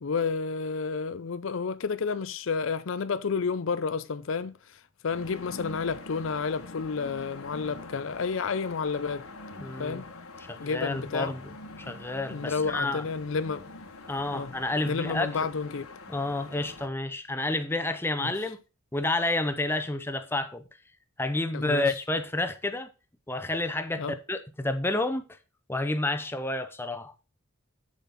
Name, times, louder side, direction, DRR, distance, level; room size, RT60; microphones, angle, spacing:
voice 1, 0.0-9.2 9.8-10.1 10.6-11.3 12.3-13.7 14.3-14.5 14.9-15.9 18.2-18.3 21.5-21.9 24.0-24.2, left 5 dB, 65° left, 0.5 m, -30 dB
sound 1, 5.1-16.9, left 3 dB, 90° left, 1.3 m, -44 dB
voice 2, 9.6-10.0 10.5-11.4 11.8-13.0 14.1-15.3 16.1-18.6 18.9-20.6 21.2-22.9 23.3-25.3 25.7-27.1, left 2 dB, 10° left, 0.7 m, -30 dB
7.8 x 6.9 x 4.1 m
head